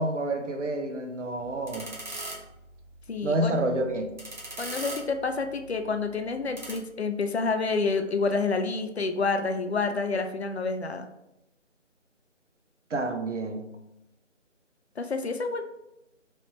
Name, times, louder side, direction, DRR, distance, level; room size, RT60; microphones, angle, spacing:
voice 1, 0.0-1.9 3.2-4.0 12.9-13.7, right 1 dB, 70° right, 6 dB, 0.8 m, -28 dB
sound 1, 1.3-6.8, right 2 dB, 40° right, 0.7 m, -42 dB
voice 2, 3.1-3.6 4.6-11.1 15.0-15.6, left 4 dB, 60° left, 7 dB, 0.5 m, -28 dB
3.1 x 3.1 x 3.0 m, 0.86 s
figure-of-eight pair, 165°, 37 cm